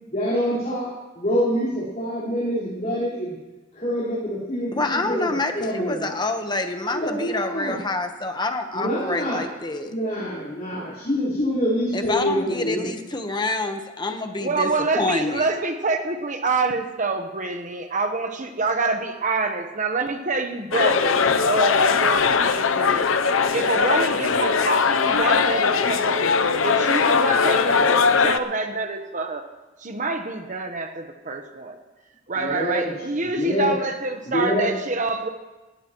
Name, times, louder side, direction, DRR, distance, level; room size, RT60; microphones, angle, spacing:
voice 1, 0.1-0.9 1.1-3.4 3.7-6.1 6.8-7.8 8.7-9.4 9.8-12.9 32.3-32.9 33.3-33.7 34.3-34.7, equal, 40° left, -9 dB, 4.4 m, -26 dB
voice 2, 4.7-9.9 11.9-15.5, left 2 dB, 20° left, 6 dB, 1.1 m, -27 dB
voice 3, 14.4-23.1 23.5-26.3 26.6-29.4 29.8-31.8 32.3-35.3, right 3 dB, 40° right, 5 dB, 1.1 m, -26 dB
sound 1, 20.7-28.4, left 5 dB, 90° left, 0.7 m, -20 dB
18.5 x 17.5 x 3.1 m, 1.1 s
head